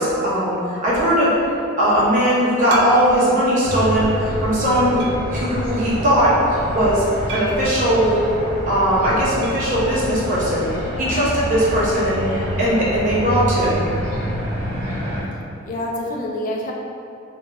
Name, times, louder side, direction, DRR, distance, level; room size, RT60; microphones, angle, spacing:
voice 1, 0.0-1.3 1.8-5.0 5.3-6.3 6.7-7.0 7.3-8.2 8.7-10.7 11.0-13.9, equal, 35° right, -8 dB, 0.8 m, -19 dB
sound 1, 2.7-3.4 4.0-4.1 5.0-5.4 7.3-7.8 9.4-9.7 10.0-10.1 10.3-10.4 12.4-12.5, right 2 dB, 55° right, 0.3 m, -34 dB
sound 2, 3.6-15.2, equal, 85° right, 1.0 m, -27 dB
voice 2, 15.7-16.7, left 1 dB, 40° left, -1 dB, 0.3 m, -27 dB
3.5 x 2.9 x 2.3 m, 2.6 s
head